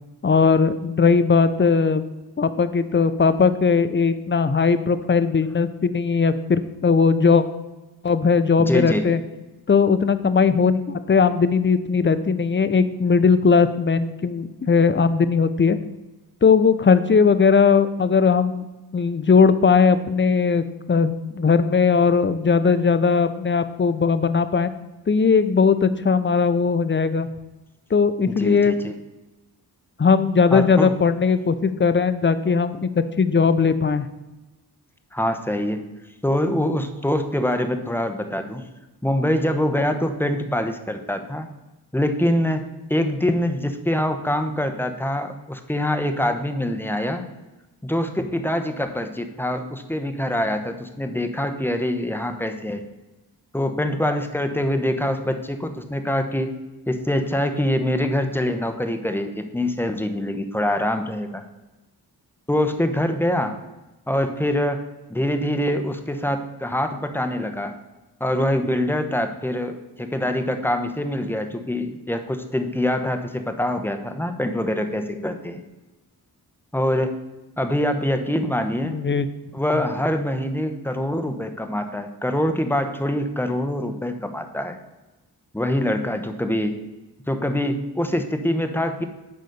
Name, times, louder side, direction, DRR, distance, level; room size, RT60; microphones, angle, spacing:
voice 1, 0.2-2.0 2.4-7.4 8.0-9.2 9.7-15.8 16.4-18.7 18.9-24.7 25.1-27.3 27.9-28.7 30.0-34.1 78.8-79.3, left 5 dB, 30° left, 12 dB, 0.6 m, -18 dB
voice 2, 8.6-9.1 28.3-28.9 30.5-30.9 35.1-35.8 36.2-38.6 39.0-41.5 41.9-47.2 47.8-52.8 53.5-56.5 56.9-61.4 62.5-63.5 64.1-67.7 68.2-75.6 76.7-77.2 77.6-79.0 79.5-84.8 85.5-86.8 87.3-89.0, left 1 dB, 5° left, 7 dB, 0.9 m, -24 dB
10.5 x 4.1 x 6.7 m, 1.1 s
wide cardioid pair, 90°, 39 cm